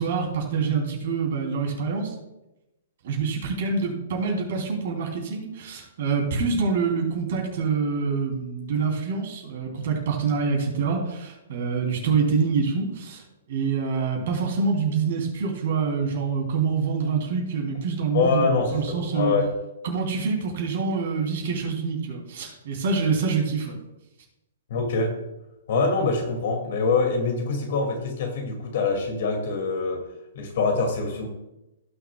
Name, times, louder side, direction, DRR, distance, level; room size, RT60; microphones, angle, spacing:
voice 1, 0.0-2.1 3.0-13.2 13.5-19.3 19.8-23.8, right 5 dB, 60° right, 1 dB, 3.3 m, -26 dB
voice 2, 18.1-19.5 24.7-25.1 25.7-30.0 30.3-31.3, left 4 dB, 60° left, 3 dB, 2.4 m, -24 dB
17.0 x 6.3 x 2.4 m, 0.94 s
hypercardioid pair, 130°, 0 cm